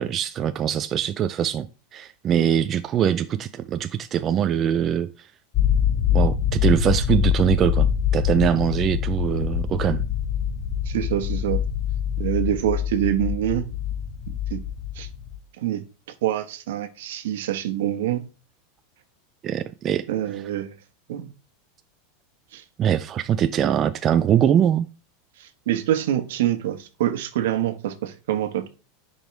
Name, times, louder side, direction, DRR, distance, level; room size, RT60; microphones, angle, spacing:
voice 1, 0.0-5.3 6.1-10.0 19.4-20.1 22.8-24.9, right 9 dB, 25° right, 0.3 m, -22 dB
sound 1, 5.5-15.4, left 9 dB, 25° left, 0.9 m, -24 dB
voice 2, 10.9-11.6 12.2-13.7 14.5-14.6 14.9-15.1 15.6-15.8 16.2-18.2 20.1-20.7 21.1-21.3 22.5-22.6 25.4-28.7, right 12 dB, 75° right, 1.2 m, -25 dB
10.5 x 5.4 x 3.2 m
supercardioid pair, 165°, 0 cm